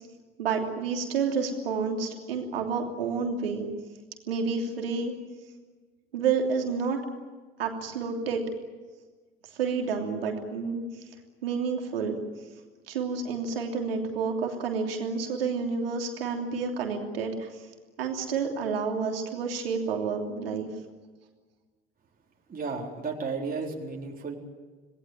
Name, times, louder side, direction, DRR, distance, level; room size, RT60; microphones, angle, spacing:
voice 1, 0.4-3.7 4.3-5.1 6.1-7.0 7.6-8.4 9.5-10.8 11.4-12.2 12.9-17.7 18.0-20.7, right 5 dB, 75° right, 3 dB, 3.1 m, -29 dB
voice 2, 22.5-24.4, right 4 dB, 30° right, 0 dB, 4.2 m, -33 dB
27.0 x 19.5 x 9.2 m, 1.4 s
figure-of-eight pair, 55°, 29 cm